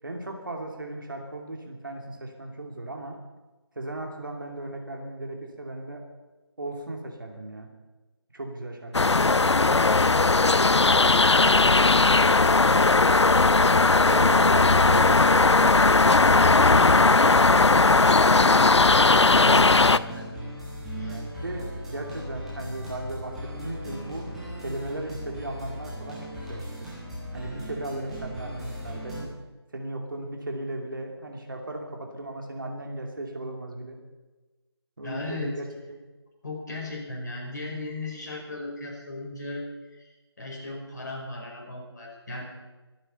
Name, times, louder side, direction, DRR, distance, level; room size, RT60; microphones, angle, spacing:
voice 1, 0.0-3.2 3.8-6.0 6.6-7.7 8.3-8.9 14.1-15.7 20.9-24.3 24.6-26.9 27.3-29.3 29.7-34.0 35.0-36.0, right 1 dB, 50° right, 2 dB, 2.7 m, -36 dB
sound 1, 8.9-20.0, left 3 dB, 85° left, 0.6 m, -18 dB
voice 2, 16.5-20.3 21.0-21.1 35.0-35.6 36.4-39.6 39.9-40.1 40.4-42.4, left 1 dB, 40° left, -2 dB, 5.4 m, -37 dB
sound 2, 19.0-29.2, equal, ahead, 1.2 m, -38 dB
24.0 x 9.3 x 5.6 m, 1.2 s
figure-of-eight pair, 170°, 14 cm